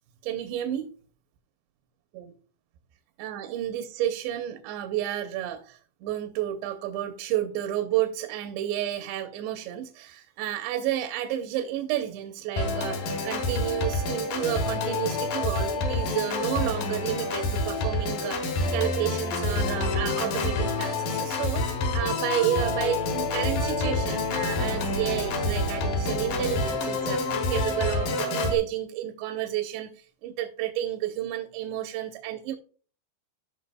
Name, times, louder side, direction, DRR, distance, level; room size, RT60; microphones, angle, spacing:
voice 1, 0.2-0.9 2.1-2.3 3.2-32.6, right 12 dB, 80° right, 7 dB, 2.8 m, -31 dB
Organ, 12.6-28.6, left 2 dB, 60° left, 2.7 m, -28 dB
15.5 x 5.7 x 2.2 m, 0.41 s
omnidirectional pair, 5.2 m